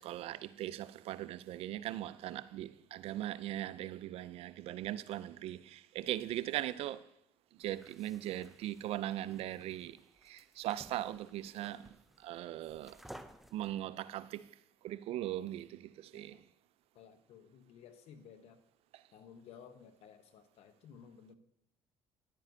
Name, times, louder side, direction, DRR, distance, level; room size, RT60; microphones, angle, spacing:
voice 1, 0.0-7.1 7.6-13.0 13.5-14.5 14.8-16.4 18.9-19.0, right 13 dB, 65° right, 0.4 m, -40 dB
sound 1, 7.6-13.7, equal, ahead, 0.4 m, -57 dB
voice 2, 16.9-18.6 19.1-21.4, left 7 dB, 70° left, 0.9 m, -56 dB
10.5 x 9.2 x 2.7 m
supercardioid pair, 90°, 11 cm